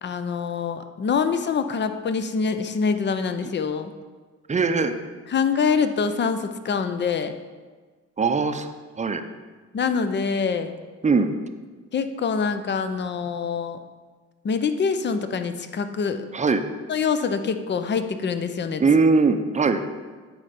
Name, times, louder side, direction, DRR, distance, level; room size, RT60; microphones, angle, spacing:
voice 1, 0.0-3.9 5.3-7.3 9.7-10.7 11.9-13.8 14.4-16.3 16.9-18.8, left 5 dB, 35° left, 9 dB, 0.6 m, -25 dB
voice 2, 4.5-4.9 8.2-8.7 9.0-9.2 11.0-11.3 16.3-16.6 18.8-19.8, right 4 dB, 25° right, 8 dB, 0.6 m, -20 dB
9.7 x 4.3 x 5.2 m, 1.4 s
cardioid pair, 90°, 30 cm